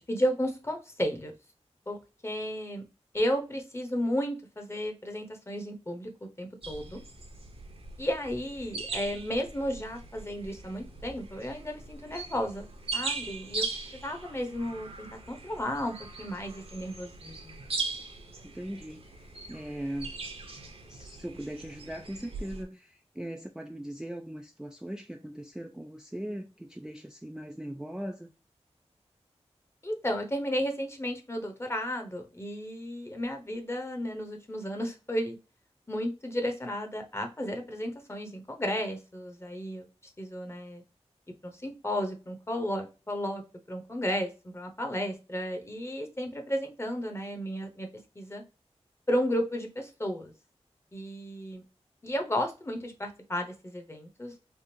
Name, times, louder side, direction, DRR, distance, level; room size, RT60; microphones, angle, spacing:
voice 1, 0.0-1.3 1.9-2.8 3.1-7.0 8.0-12.7 12.9-13.7 13.9-17.6 29.8-35.4 35.9-39.9 40.2-40.8 41.4-43.4 43.7-47.9 48.1-48.4 49.1-50.3 50.9-51.6 52.0-54.3, equal, 25° left, 0.9 m, -33 dB
sound 1, 6.6-22.6, right 3 dB, 60° right, 0.8 m, -40 dB
voice 2, 18.5-19.0 19.5-20.2 20.9-28.3, right 1 dB, 5° right, 0.3 m, -39 dB
3.5 x 2.5 x 2.8 m
wide cardioid pair, 75°, 11 cm